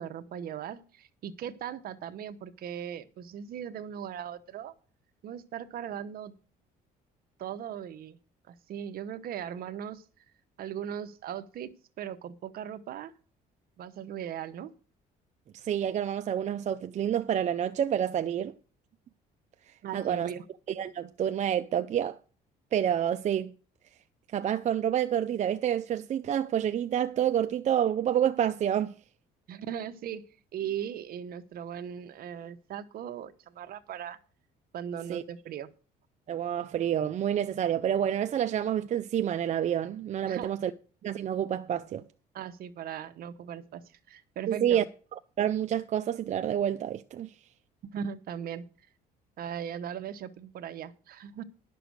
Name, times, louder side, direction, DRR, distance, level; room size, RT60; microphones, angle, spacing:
voice 1, 0.0-4.7 5.2-6.3 7.4-8.2 8.5-10.0 10.6-11.7 12.0-13.1 13.8-14.7 19.8-20.4 29.5-30.2 30.5-34.2 34.7-35.7 40.2-40.5 42.3-44.9 47.8-48.7 49.4-51.4, right 9 dB, 60° right, 1.1 m, -38 dB
voice 2, 15.5-18.5 19.9-20.3 20.7-22.2 22.7-23.5 24.3-28.9 35.1-35.2 36.3-40.7 41.0-42.0 44.5-44.8 45.4-47.3, right 10 dB, 45° right, 0.6 m, -28 dB
11.5 x 6.9 x 6.3 m
cardioid pair, 110°, 17 cm